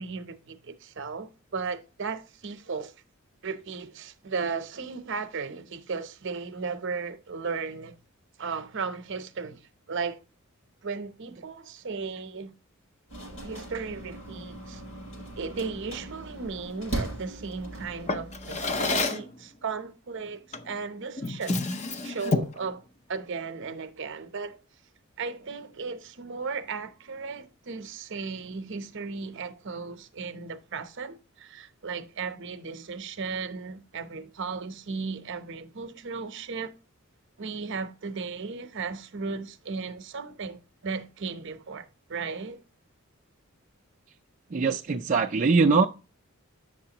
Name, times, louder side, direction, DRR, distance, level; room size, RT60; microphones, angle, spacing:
voice 1, 0.0-2.9 3.4-8.0 8.4-10.2 10.8-12.5 13.4-14.8 15.4-21.6 22.0-22.8 23.1-24.6 25.2-36.8 37.4-42.6, right 4 dB, 60° right, 0.8 m, -35 dB
sound 1, 13.1-19.1, right 1 dB, 65° left, 5.2 m, -39 dB
Drawer open or close, 18.1-19.3 20.5-20.8 21.2-22.6, left 3 dB, 35° left, 0.6 m, -29 dB
voice 2, 44.5-45.9, right 4 dB, 40° right, 0.4 m, -22 dB
8.5 x 6.7 x 2.9 m
head